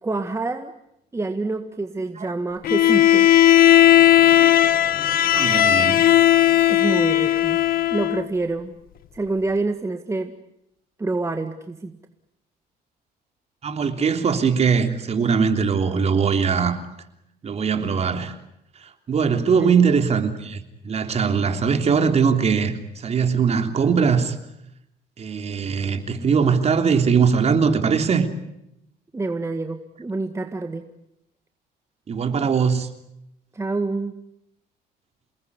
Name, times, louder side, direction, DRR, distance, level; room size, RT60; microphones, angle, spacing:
voice 1, 0.0-0.7 1.1-3.3 6.7-7.6 7.9-8.7 9.1-10.3 11.0-11.9 19.5-19.7 29.1-30.8 33.5-34.1, right 3 dB, 15° right, 7 dB, 1.7 m, -27 dB
Bowed string instrument, 2.6-8.3, left 12 dB, 60° left, 1.7 m, -16 dB
voice 2, 5.3-6.0 13.6-16.8 17.4-18.3 19.1-24.4 25.2-28.3 32.1-32.9, right 6 dB, 40° right, 7 dB, 3.3 m, -21 dB
28.5 x 19.5 x 9.7 m, 0.81 s
cardioid pair, 110°, 17 cm